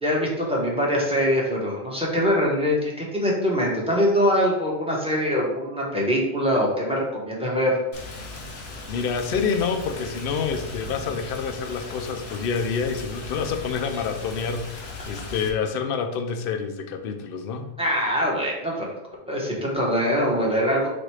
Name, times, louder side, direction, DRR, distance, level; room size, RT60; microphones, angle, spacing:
voice 1, 0.0-7.8 17.8-18.9 19.3-20.9, equal, 5° right, -4 dB, 1.0 m, -23 dB
Rain, 7.9-15.5, left 3 dB, 85° left, 1.1 m, -38 dB
voice 2, 8.9-17.7, left 5 dB, 65° left, 6 dB, 0.7 m, -28 dB
4.3 x 2.6 x 4.6 m, 0.93 s
omnidirectional pair, 1.1 m